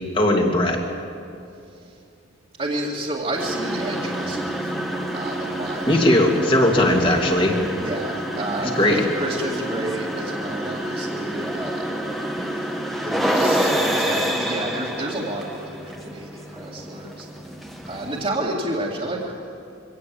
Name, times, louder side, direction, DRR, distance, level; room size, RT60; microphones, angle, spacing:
voice 1, 0.1-0.8 5.9-7.5 8.8-9.0, left 1 dB, 25° left, 1 dB, 2.5 m, -18 dB
voice 2, 2.6-5.9 7.8-12.1 12.5-12.8 13.0-17.3 17.9-19.4, right 1 dB, 30° right, -6 dB, 2.3 m, -30 dB
sound 1, 3.3-18.3, equal, ahead, 1.6 m, -28 dB
24.0 x 18.0 x 7.7 m, 2.6 s
head